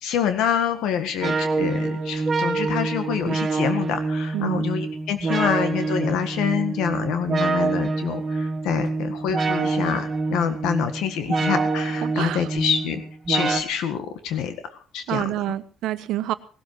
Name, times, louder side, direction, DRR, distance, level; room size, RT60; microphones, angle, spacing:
voice 1, 0.0-13.0 13.3-15.2, left 8 dB, 80° left, 8 dB, 1.7 m, -26 dB
sound 1, 1.2-13.6, right 3 dB, 25° right, 2.6 m, -26 dB
voice 2, 4.3-4.7 12.0-12.5 15.1-16.3, right 13 dB, 75° right, 11 dB, 1.2 m, -27 dB
19.0 x 13.0 x 4.7 m, 0.39 s
cardioid pair, 150°, 0 cm